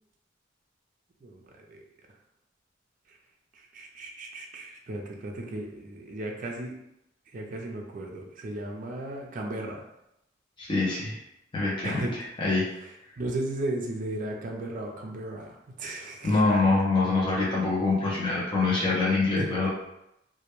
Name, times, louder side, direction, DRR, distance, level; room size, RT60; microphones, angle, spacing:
voice 1, 1.2-1.8 3.1-3.2 3.5-6.8 7.3-9.8 11.8-12.1 13.2-16.6 18.0-18.1 19.3-19.5, right 1 dB, 45° right, 1 dB, 0.4 m, -35 dB
voice 2, 10.6-11.2 11.5-12.0 12.4-12.6 16.2-19.7, left 3 dB, 25° left, -6 dB, 0.5 m, -25 dB
2.2 x 2.1 x 2.9 m, 0.83 s
head